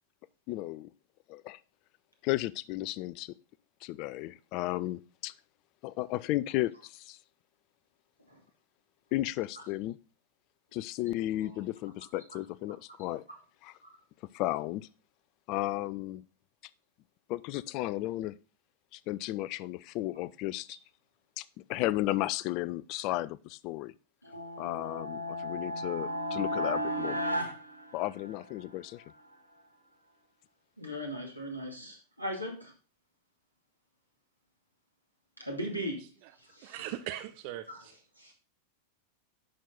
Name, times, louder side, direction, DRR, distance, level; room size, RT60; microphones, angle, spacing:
voice 1, 0.5-0.9 1.3-1.6 2.2-3.3 3.8-5.3 5.8-7.2 9.1-10.0 10.7-13.2 13.6-13.7 14.3-14.9 15.5-16.2 17.3-18.3 18.9-20.8 21.4-21.5 21.7-23.9 24.6-27.2 27.9-29.0, left 16 dB, 40° left, 0.4 m, -34 dB
sound 1, 24.2-28.6, equal, 85° left, 1.8 m, -34 dB
voice 2, 30.8-32.7 35.4-36.1 36.4-36.9 37.7-37.8 38.2-38.3, equal, 90° right, 2.4 m, -39 dB
voice 3, 36.6-37.9, right 13 dB, 45° right, 0.7 m, -40 dB
10.5 x 6.3 x 4.0 m
figure-of-eight pair, 90°, 0 cm